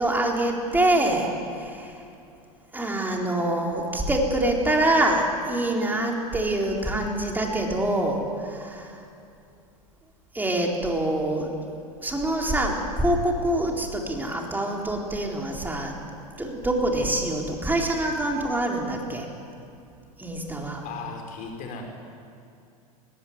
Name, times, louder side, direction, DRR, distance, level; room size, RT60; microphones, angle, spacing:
voice 1, 0.0-1.9 2.7-9.0 10.3-11.6 12.0-16.0 16.4-19.3 20.2-20.8, right 1 dB, 10° right, 0 dB, 4.1 m, -25 dB
voice 2, 20.8-21.8, left 5 dB, 45° left, 3 dB, 4.9 m, -37 dB
20.0 x 16.0 x 9.5 m, 2.6 s
hypercardioid pair, 95°, 19 cm